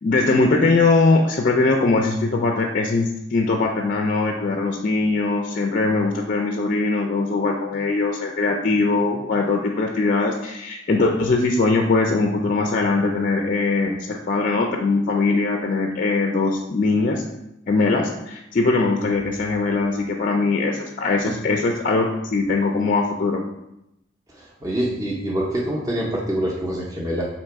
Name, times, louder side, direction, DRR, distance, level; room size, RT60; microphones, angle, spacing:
voice 1, 0.0-17.2 17.7-23.4, left 3 dB, 40° left, 2 dB, 0.3 m, -21 dB
voice 2, 24.4-27.3, right 1 dB, 15° right, -5 dB, 0.5 m, -25 dB
4.0 x 2.9 x 4.5 m, 0.87 s
head